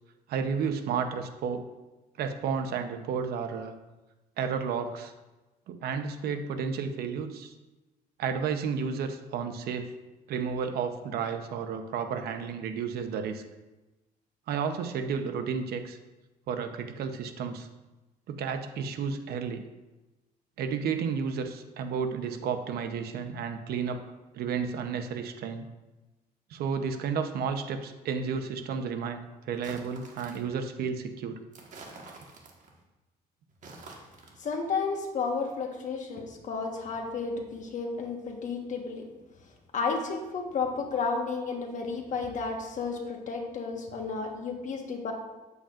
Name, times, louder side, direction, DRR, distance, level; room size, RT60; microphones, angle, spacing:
voice 1, 0.3-1.6 2.2-3.7 4.4-5.1 5.7-7.5 8.2-9.9 10.3-13.4 14.5-16.0 16.5-17.7 18.3-19.6 20.6-24.0 24.3-25.7 26.5-31.4, right 6 dB, 70° right, 7 dB, 0.8 m, -32 dB
sound 1, 29.5-30.5 31.5-32.8 33.5-34.4, right 3 dB, 45° right, 1.6 m, -48 dB
voice 2, 34.4-39.1 39.7-45.1, left 4 dB, 50° left, 2 dB, 1.4 m, -32 dB
8.8 x 8.1 x 2.5 m, 1.1 s
cardioid pair, 110°, 17 cm